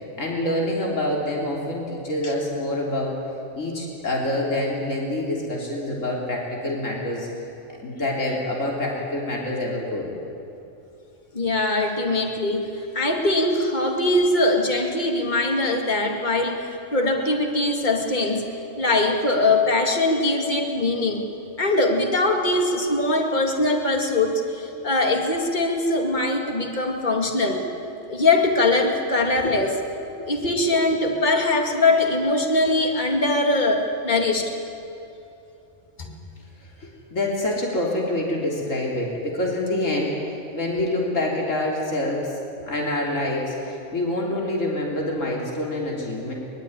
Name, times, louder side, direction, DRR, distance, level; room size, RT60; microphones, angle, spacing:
voice 1, 0.2-3.2 3.5-7.3 7.8-10.1 29.4-29.5 30.4-30.5 36.8-40.2 40.5-42.3 42.6-46.3, left 1 dB, 75° left, -2 dB, 3.9 m, -26 dB
voice 2, 11.3-18.5 18.8-21.3 21.6-27.6 28.1-29.7 30.3-34.5 36.0-36.1, left 2 dB, 35° left, 2 dB, 2.4 m, -22 dB
23.5 x 22.0 x 9.9 m, 2.8 s
omnidirectional pair, 1.3 m